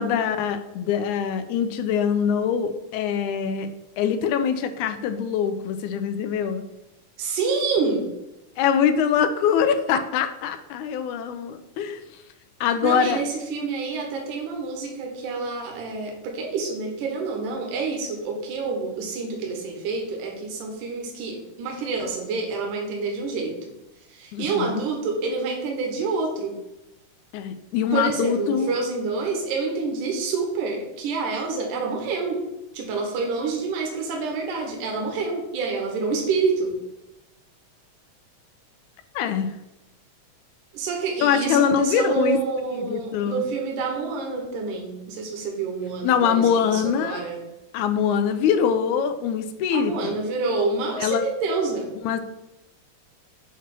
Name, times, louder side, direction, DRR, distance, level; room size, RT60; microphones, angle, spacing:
voice 1, 0.0-3.7 4.0-6.6 8.6-12.0 12.6-13.2 24.3-24.8 27.3-28.8 39.1-39.6 41.2-42.4 42.7-43.4 46.0-47.2 47.7-50.2 51.0-51.2 52.0-52.2, left 8 dB, 80° left, 8 dB, 1.8 m, -23 dB
voice 2, 7.2-8.1 12.8-23.6 24.1-26.6 27.9-32.4 32.7-36.8 40.7-47.4 49.7-51.9, right 4 dB, 75° right, 1 dB, 2.5 m, -27 dB
7.2 x 3.0 x 5.9 m, 0.93 s
omnidirectional pair, 3.7 m